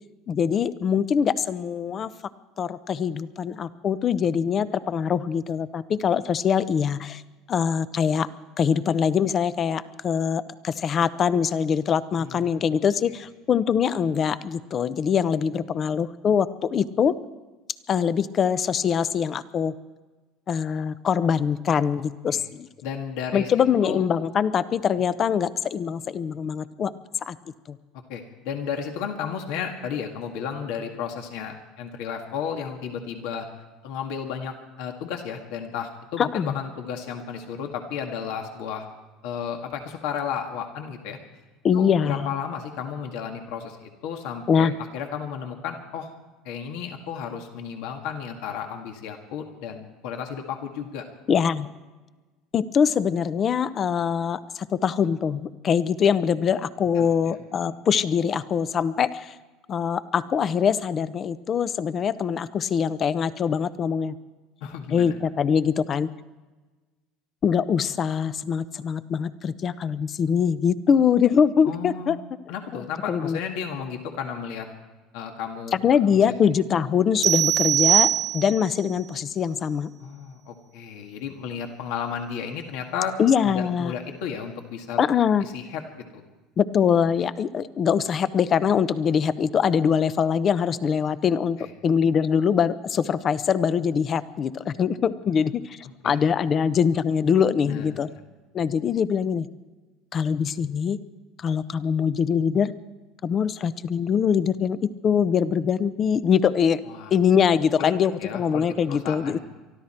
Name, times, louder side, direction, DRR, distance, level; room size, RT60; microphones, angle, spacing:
voice 1, 0.3-2.1 2.6-7.2 7.5-8.3 8.6-17.1 17.9-19.8 20.5-22.7 23.3-26.9 27.2-27.4 27.7-27.8 36.2-36.6 41.6-42.3 44.5-44.8 51.3-51.7 52.5-59.4 59.7-64.2 64.9-66.1 67.4-72.2 72.7-73.4 75.7-79.9 83.2-83.9 85.0-85.4 86.6-91.6 91.8-98.1 98.5-99.5 100.1-101.0 101.4-102.7 103.2-106.8 107.1-109.4, left 7 dB, 40° left, 15 dB, 0.7 m, -23 dB
voice 2, 12.2-12.6 22.3-22.5 22.8-23.5 23.8-24.0 28.1-33.5 33.8-38.9 39.2-41.2 41.7-46.1 46.4-51.1 57.0-57.1 64.6-65.2 71.6-72.2 72.5-74.7 75.1-76.2 80.0-83.1 83.4-85.0 85.4-85.8 86.1-86.2 91.6-91.7 96.0-96.2 97.6-98.2 106.9-107.1 107.8-107.9 108.2-109.4, left 7 dB, 75° left, 4 dB, 2.0 m, -33 dB
sound 1, 77.2-78.8, right 11 dB, 45° right, 0.4 m, -21 dB
24.0 x 13.0 x 4.4 m, 1.2 s
supercardioid pair, 105°, 0 cm